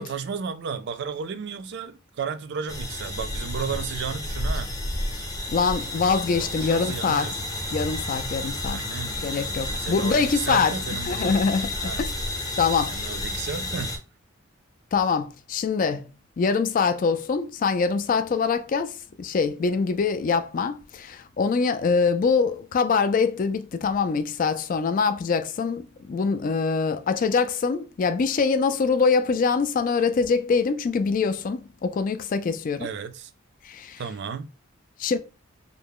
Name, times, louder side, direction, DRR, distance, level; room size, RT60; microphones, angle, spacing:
voice 1, 0.0-4.7 6.4-7.4 8.7-11.4 11.8-12.1 12.8-14.0 32.8-33.3 34.0-34.5, right 6 dB, 55° right, 0.3 m, -33 dB
sound 1, 2.7-14.0, left 1 dB, 15° left, 0.7 m, -31 dB
voice 2, 5.5-7.3 7.7-8.8 9.2-10.7 11.1-12.1 12.6-13.0 14.9-16.1 16.4-32.9 33.6-34.0 35.0-35.2, left 5 dB, 40° left, 0.3 m, -24 dB
3.2 x 2.0 x 3.6 m
head